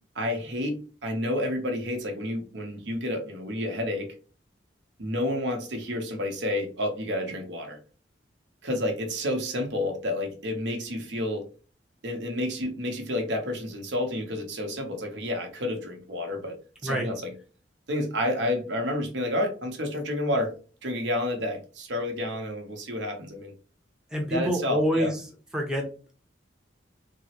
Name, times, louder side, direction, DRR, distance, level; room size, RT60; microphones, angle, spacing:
voice 1, 0.1-4.1 5.0-7.8 8.6-11.4 12.0-16.6 16.8-17.3 17.9-20.5 20.8-23.5 24.3-25.1, left 1 dB, 80° right, 4 dB, 0.8 m, -30 dB
voice 2, 24.1-25.3 25.5-26.1, equal, 5° right, 0 dB, 0.6 m, -27 dB
3.5 x 2.1 x 2.8 m, 0.37 s
head